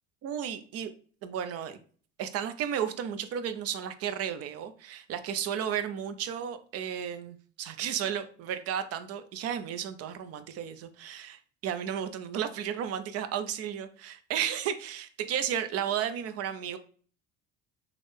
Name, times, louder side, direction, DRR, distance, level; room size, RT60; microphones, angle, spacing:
voice 1, 0.2-0.9 1.2-1.8 2.2-16.8, right 9 dB, 55° right, 10 dB, 0.5 m, -33 dB
3.6 x 2.1 x 3.3 m, 0.43 s
supercardioid pair, 90°, 29 cm